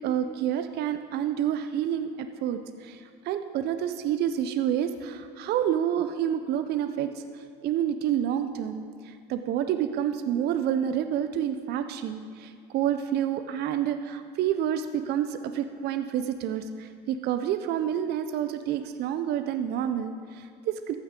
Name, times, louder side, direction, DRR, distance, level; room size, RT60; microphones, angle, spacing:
voice 1, 0.0-21.0, right 10 dB, 50° right, 9 dB, 0.5 m, -29 dB
14.5 x 6.4 x 3.7 m, 2.3 s
hypercardioid pair, 80°, 21 cm